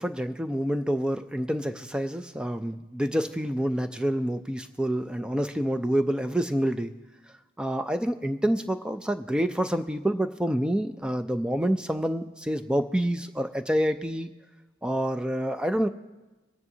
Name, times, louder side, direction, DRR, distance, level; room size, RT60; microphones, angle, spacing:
voice 1, 0.0-6.9 7.6-14.3 14.8-15.9, equal, 5° right, 9 dB, 0.3 m, -27 dB
20.5 x 9.6 x 2.8 m, 1.1 s
head